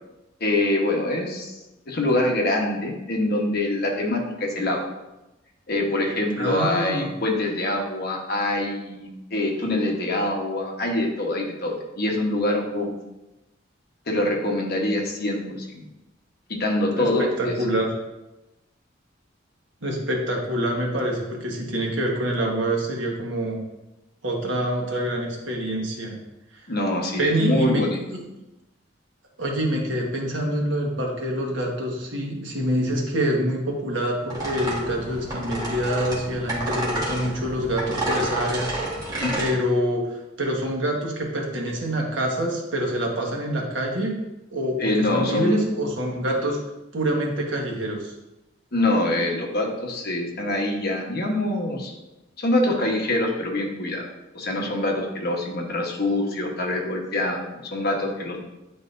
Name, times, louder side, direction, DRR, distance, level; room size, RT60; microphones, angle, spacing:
voice 1, 0.4-1.6 1.9-4.8 5.7-12.9 14.1-15.4 15.7-15.9 16.6-17.5 26.7-28.0 39.2-39.4 44.8-45.6 48.7-51.9 52.4-54.1 54.3-58.4, left 1 dB, 55° left, 0 dB, 1.1 m, -24 dB
voice 2, 6.3-7.1 17.0-17.1 17.4-17.9 19.8-23.6 24.2-26.2 27.2-27.9 28.1-28.2 29.4-38.7 39.4-44.1 44.5-46.6 46.9-48.1, right 1 dB, 70° right, -1 dB, 1.3 m, -26 dB
sound 1, 34.3-39.5, right 1 dB, 20° right, 1.5 m, -29 dB
9.8 x 3.8 x 2.6 m, 1.0 s
head